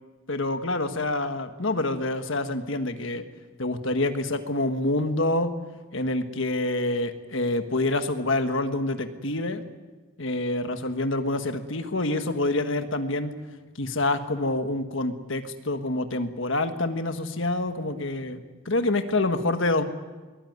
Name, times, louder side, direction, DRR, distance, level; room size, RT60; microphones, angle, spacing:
voice 1, 0.3-3.2 3.6-5.5 5.9-9.6 10.2-13.3 13.8-18.4 18.6-19.8, left 2 dB, 60° left, 8 dB, 1.6 m, -27 dB
22.0 x 19.5 x 9.5 m, 1.4 s
head